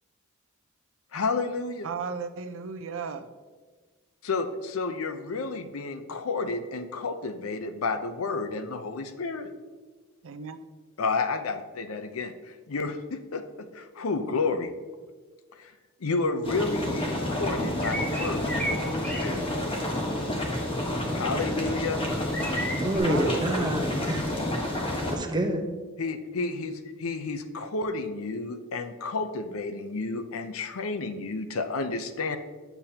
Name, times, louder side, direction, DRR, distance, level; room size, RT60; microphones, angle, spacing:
voice 1, 1.1-1.9 4.2-9.5 11.0-14.7 15.6-15.7 16.0-19.4 21.1-22.0 26.0-32.4, left 3 dB, 75° left, 8 dB, 0.6 m, -31 dB
voice 2, 1.8-3.3 10.2-10.6 23.0-23.7, right 5 dB, 65° right, 10 dB, 0.5 m, -35 dB
sound 1, 16.4-25.2, left 1 dB, 25° left, 1.3 m, -29 dB
sound 2, 17.8-18.8 19.0-19.3 22.3-23.0, equal, 5° left, 1.0 m, -32 dB
voice 3, 22.8-24.4 25.1-25.6, right 1 dB, 20° right, 3 dB, 0.8 m, -27 dB
9.2 x 6.9 x 2.8 m, 1.4 s
head